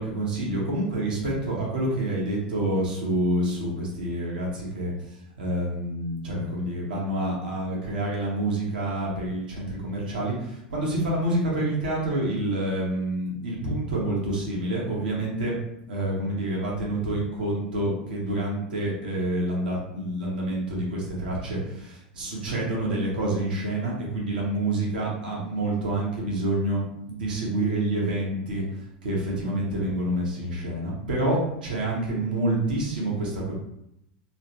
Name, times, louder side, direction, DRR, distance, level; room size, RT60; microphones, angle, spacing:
voice 1, 0.0-4.9 5.4-15.6 15.9-28.6 29.0-33.5, right 1 dB, 85° right, -4 dB, 1.0 m, -27 dB
3.2 x 2.1 x 2.9 m, 0.80 s
hypercardioid pair, 90°, 5 cm